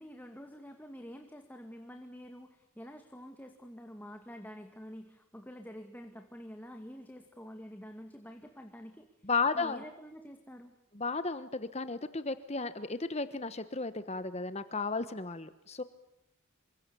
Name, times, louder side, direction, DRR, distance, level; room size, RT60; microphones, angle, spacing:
voice 1, 0.0-10.7, equal, 10° left, 5 dB, 2.2 m, -48 dB
voice 2, 9.2-9.8 10.9-15.8, left 4 dB, 30° left, 12 dB, 1.2 m, -34 dB
28.0 x 25.5 x 7.0 m, 0.82 s
head